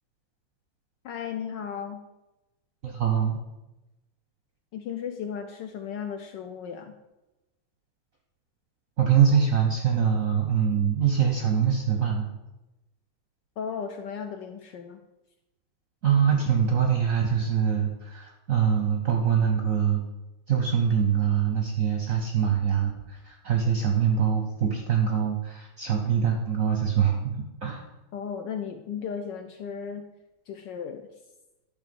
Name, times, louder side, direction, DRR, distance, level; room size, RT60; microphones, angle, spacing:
voice 1, 1.0-2.0 4.7-7.0 13.6-15.0 28.1-30.1 30.5-31.1, left 7 dB, 70° left, 6 dB, 1.1 m, -35 dB
voice 2, 2.8-3.4 9.0-12.2 16.0-20.0 20.5-27.8, right 7 dB, 60° right, 2 dB, 0.9 m, -24 dB
10.5 x 3.5 x 6.9 m, 1.0 s
omnidirectional pair, 2.4 m